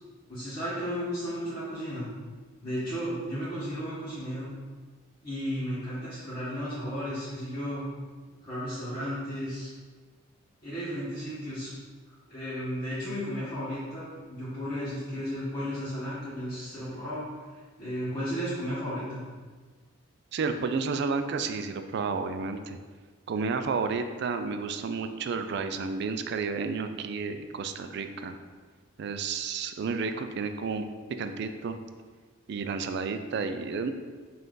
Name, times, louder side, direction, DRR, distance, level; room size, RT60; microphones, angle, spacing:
voice 1, 0.3-2.1 2.6-4.5 5.2-7.9 8.4-9.7 10.6-11.7 12.3-17.4 17.8-19.2, equal, 20° left, -12 dB, 1.2 m, -34 dB
voice 2, 20.3-22.8 23.3-28.4 29.0-30.9 31.2-31.8 32.5-33.9, right 4 dB, 55° right, 8 dB, 0.3 m, -31 dB
5.5 x 2.6 x 3.8 m, 1.4 s
head